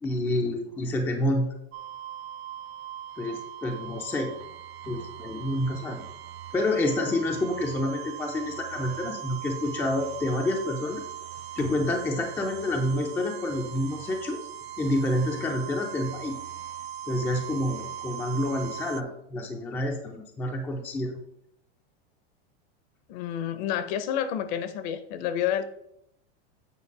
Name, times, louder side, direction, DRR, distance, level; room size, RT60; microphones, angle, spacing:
voice 1, 0.0-1.5 3.2-4.3 4.9-6.0 6.5-11.0 11.6-14.4 14.8-16.4 17.1-21.2, left 1 dB, 5° left, 2 dB, 0.4 m, -28 dB
sound 1, 1.7-19.0, right 10 dB, 80° right, 0.6 m, -40 dB
Bowed string instrument, 11.6-15.1, left 4 dB, 80° left, 1.3 m, -48 dB
voice 2, 23.1-25.7, left 9 dB, 45° left, 12 dB, 0.7 m, -29 dB
8.3 x 4.5 x 4.7 m, 0.76 s
supercardioid pair, 160°, 31 cm